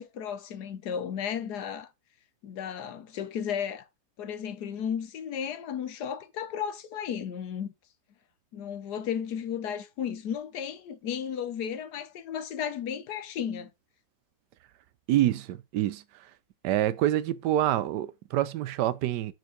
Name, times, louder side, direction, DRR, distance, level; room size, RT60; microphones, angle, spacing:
voice 1, 0.0-1.9 2.4-3.9 4.2-7.7 8.5-13.7, left 8 dB, 70° left, 1.4 m, -34 dB
voice 2, 15.1-16.3 16.6-19.3, right 13 dB, 80° right, 1.2 m, -27 dB
6.2 x 4.5 x 5.1 m
omnidirectional pair, 1.9 m